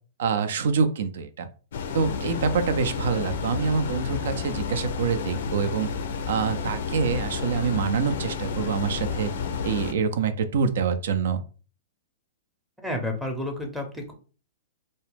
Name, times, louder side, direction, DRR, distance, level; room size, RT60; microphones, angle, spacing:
voice 1, 0.2-1.5 1.9-5.9 6.3-9.3 9.6-11.4, right 5 dB, 70° right, 10 dB, 0.4 m, -26 dB
sound 1, 1.7-9.9, left 5 dB, 70° left, 0.4 m, -31 dB
voice 2, 12.8-14.1, left 1 dB, 5° right, 2 dB, 0.6 m, -30 dB
2.2 x 2.0 x 3.2 m, 0.38 s
hypercardioid pair, 120°, 0 cm